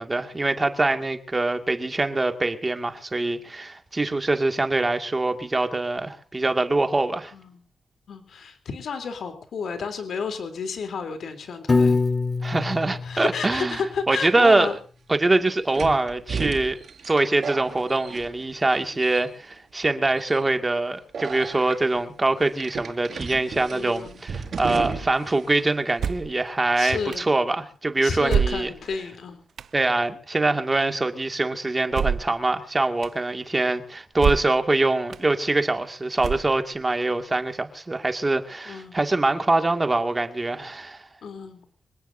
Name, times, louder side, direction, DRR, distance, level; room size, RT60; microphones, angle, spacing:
voice 1, 0.0-7.3 12.4-13.8 14.1-14.7 15.1-16.8 17.0-28.7 29.7-41.0, right 2 dB, 20° right, 2.2 m, -24 dB
voice 2, 8.1-12.0 13.0-14.7 23.7-24.2 26.8-27.3 28.0-29.4 38.6-39.0 41.2-41.6, left 5 dB, 75° left, 3.4 m, -31 dB
Piano, 11.7-13.9, left 3 dB, 25° left, 1.8 m, -24 dB
sound 1, 14.4-14.5 15.7-18.7 19.0-19.5 20.2-20.4 21.1-21.8 22.6-25.3 25.6-25.7 26.9-27.2, right 5 dB, 60° right, 4.7 m, -34 dB
sound 2, 26.0-26.4 27.1-27.2 28.3-29.0 29.6-29.7 31.9-32.4 33.0-33.1 34.2-34.6 35.1-35.2 36.2-36.8, right 7 dB, 75° right, 0.9 m, -26 dB
26.0 x 18.0 x 2.7 m
wide cardioid pair, 155°, 0 cm